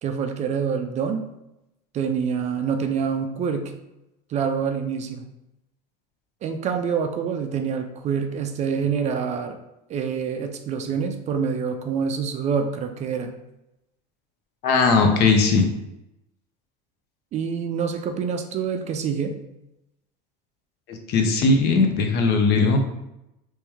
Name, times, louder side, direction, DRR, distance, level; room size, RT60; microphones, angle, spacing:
voice 1, 0.0-1.2 1.9-3.7 4.3-5.2 6.4-9.6 9.9-13.4 17.3-19.4, right 6 dB, 35° right, 6 dB, 0.4 m, -26 dB
voice 2, 14.6-15.7 20.9-22.8, left 4 dB, 50° left, 5 dB, 0.7 m, -19 dB
3.1 x 3.0 x 3.4 m, 0.89 s
supercardioid pair, 120°, 21 cm